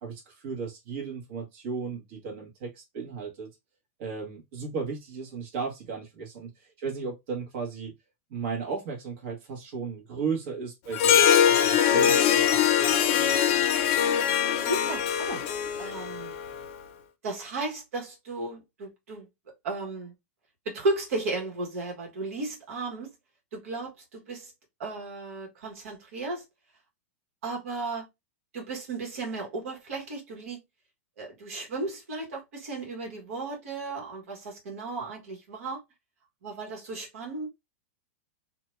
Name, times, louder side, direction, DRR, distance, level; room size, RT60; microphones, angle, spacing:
voice 1, 0.0-3.5 4.0-7.9 8.3-13.6, right 5 dB, 50° right, 1.2 m, -35 dB
Harp, 10.9-16.7, left 9 dB, 45° left, 0.6 m, -23 dB
voice 2, 14.6-15.4 15.8-16.4 17.2-19.3 19.6-20.1 20.6-23.1 23.5-24.5 24.8-26.4 27.4-28.1 28.5-30.6 31.2-35.8 36.4-37.5, right 3 dB, 70° right, 1.3 m, -34 dB
2.7 x 2.2 x 3.1 m
supercardioid pair, 150°, 8 cm